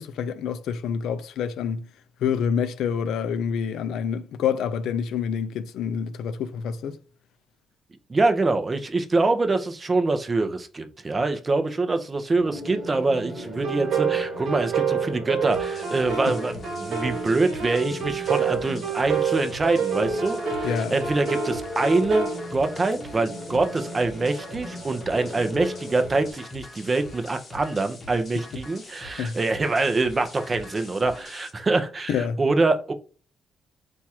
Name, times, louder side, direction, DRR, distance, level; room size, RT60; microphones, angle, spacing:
voice 1, 0.0-1.9 2.2-7.0 20.6-21.0 29.2-29.4 32.1-32.4, left 7 dB, 80° left, 0.4 m, -27 dB
voice 2, 8.1-32.9, right 3 dB, 20° right, 0.5 m, -25 dB
sound 1, 12.4-26.3, left 1 dB, ahead, 1.2 m, -37 dB
sound 2, 13.6-22.4, right 7 dB, 60° right, 1.3 m, -28 dB
sound 3, 15.5-31.5, left 2 dB, 30° left, 0.8 m, -44 dB
4.4 x 2.4 x 4.2 m
cardioid pair, 155°, 0 cm